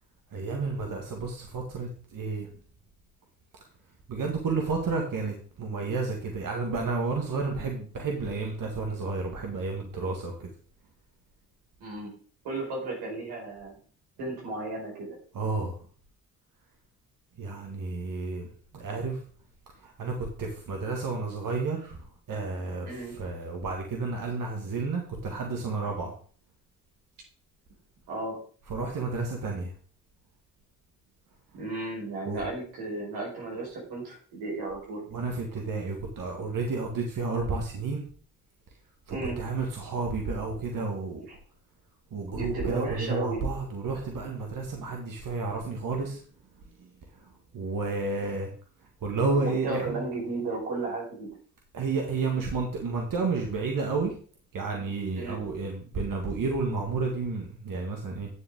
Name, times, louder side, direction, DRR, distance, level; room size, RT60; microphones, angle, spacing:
voice 1, 0.3-2.5 4.1-10.5 15.3-15.7 17.4-18.5 18.7-19.2 19.8-20.1 20.4-22.0 22.3-26.1 28.7-29.7 32.3-32.4 35.1-38.0 39.1-41.2 42.1-46.2 47.5-48.5 49.0-50.0 51.7-54.1 54.5-58.3, right 3 dB, 60° right, 1 dB, 2.0 m, -31 dB
voice 2, 11.8-12.1 12.4-13.8 14.2-15.2 22.8-23.1 28.1-28.4 31.5-35.0 39.1-39.4 41.3-41.4 42.3-43.5 49.3-51.3 55.1-55.4, right 2 dB, 90° right, -3 dB, 4.9 m, -34 dB
10.5 x 7.5 x 3.7 m, 0.44 s
supercardioid pair, 55°, 37 cm